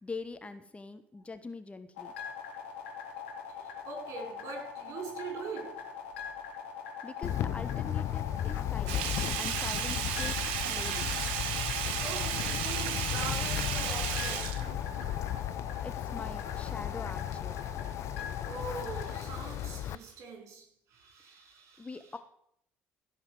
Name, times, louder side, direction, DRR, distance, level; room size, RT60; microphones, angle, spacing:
voice 1, 0.0-2.1 7.0-11.1 15.8-17.6 21.8-22.2, left 3 dB, 20° left, 1.2 m, -43 dB
sound 1, 2.0-19.2, left 7 dB, 80° left, 2.9 m, -42 dB
voice 2, 3.5-5.8 8.8-9.2 11.0-14.7 17.9-18.0 18.4-22.0, right 4 dB, 55° right, 4.9 m, -43 dB
Wind, 7.2-20.0, left 12 dB, 55° left, 0.6 m, -35 dB
Sink (filling or washing), 8.9-15.4 15.7-15.8, right 9 dB, 75° right, 1.2 m, -34 dB
16.5 x 5.8 x 7.8 m
hypercardioid pair, 55°, 6 cm